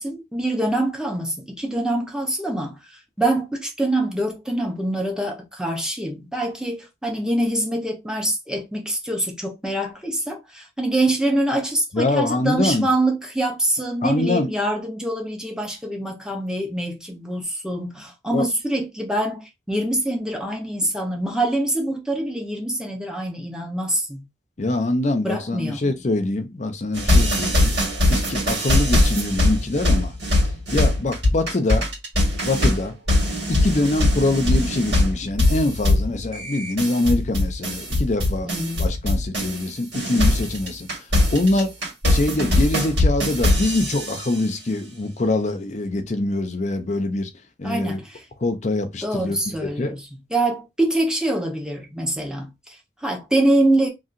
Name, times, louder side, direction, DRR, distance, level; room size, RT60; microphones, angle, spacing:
voice 1, 0.0-24.2 25.2-25.9 38.4-38.9 47.6-48.2 49.0-53.9, right 1 dB, 5° right, 0.7 m, -25 dB
voice 2, 11.9-12.9 14.0-14.6 18.3-18.5 24.6-27.7 28.1-30.1 30.7-31.9 32.4-32.9 33.5-38.5 38.8-40.9 41.3-41.7 42.1-47.3 47.6-48.0 48.4-50.0, left 2 dB, 40° left, 0.6 m, -24 dB
sound 1, 26.9-39.7 39.9-44.3, left 1 dB, 70° right, 2.0 m, -21 dB
2.8 x 2.8 x 2.5 m
head